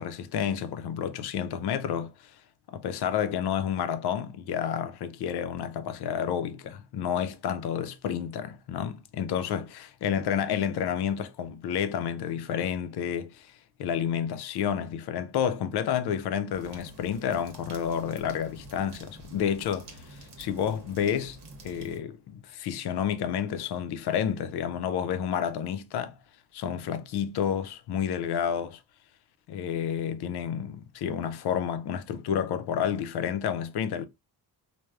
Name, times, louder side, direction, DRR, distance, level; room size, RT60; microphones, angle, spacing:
voice 1, 0.0-2.3 2.7-13.5 13.8-21.4 21.6-26.1 26.5-28.8 29.5-34.1, left 8 dB, 75° left, 0.5 m, -30 dB
sound 1, 16.5-22.0, right 1 dB, 75° right, 0.9 m, -48 dB
3.2 x 2.1 x 2.3 m
cardioid pair, 85°, 40 cm